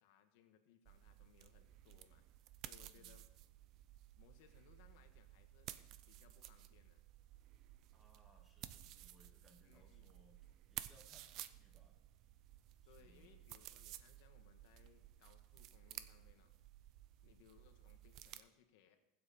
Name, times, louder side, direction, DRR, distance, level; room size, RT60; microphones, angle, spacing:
voice 1, 0.0-3.2 4.2-5.7 6.1-7.0 9.6-10.2 12.8-16.5 17.2-19.0, left 9 dB, 65° left, 6 dB, 1.4 m, -68 dB
sound 1, 0.8-18.4, right 13 dB, 45° right, 0.6 m, -55 dB
voice 2, 7.9-10.4 10.7-12.0 12.8-13.3, right 1 dB, 15° right, 1 dB, 2.4 m, -69 dB
21.0 x 7.8 x 4.3 m, 0.92 s
supercardioid pair, 150°, 0 cm